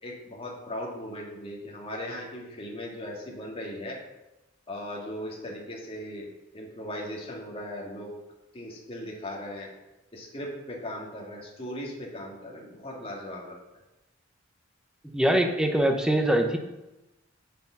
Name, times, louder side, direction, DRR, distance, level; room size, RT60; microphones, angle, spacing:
voice 1, 0.0-4.0 4.7-6.3 6.5-8.1 8.5-9.7 10.1-13.6, left 1 dB, 30° left, -2 dB, 2.0 m, -38 dB
voice 2, 15.1-16.6, right 1 dB, 5° right, 4 dB, 0.9 m, -23 dB
7.5 x 6.9 x 5.6 m, 1.0 s
head